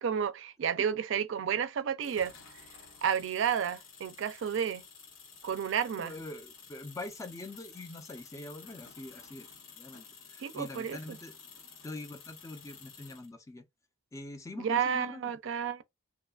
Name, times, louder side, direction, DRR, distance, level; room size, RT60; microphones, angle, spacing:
voice 1, 0.0-2.3 3.0-4.8 5.4-6.1 10.4-11.0 14.6-15.8, right 8 dB, 65° right, 0.3 m, -31 dB
sound 1, 2.0-13.3, left 6 dB, 80° left, 0.8 m, -52 dB
voice 2, 6.0-9.5 9.8-11.4 11.8-13.7 14.1-15.2, left 2 dB, 15° left, 0.3 m, -44 dB
2.7 x 2.3 x 2.2 m
head